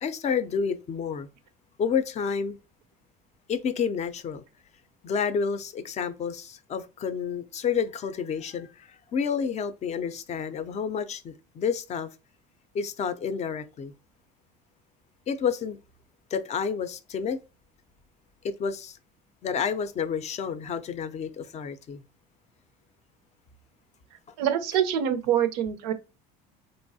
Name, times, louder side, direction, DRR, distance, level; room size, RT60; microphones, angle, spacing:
voice 1, 0.0-1.3 1.8-2.6 3.5-4.4 5.0-12.1 12.7-13.9 15.3-15.8 16.3-17.4 18.4-19.0 19.4-22.0, left 6 dB, 35° left, 0.4 m, -30 dB
voice 2, 24.4-25.9, right 9 dB, 85° right, 0.5 m, -25 dB
3.0 x 2.3 x 2.6 m
supercardioid pair, 85°, 19 cm